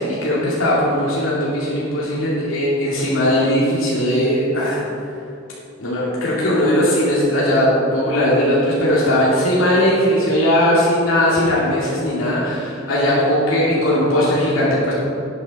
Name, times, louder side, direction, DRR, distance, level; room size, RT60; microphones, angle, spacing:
voice 1, 0.0-4.8 5.8-14.9, equal, 85° left, -7 dB, 2.5 m, -18 dB
11.5 x 9.3 x 4.2 m, 2.8 s
head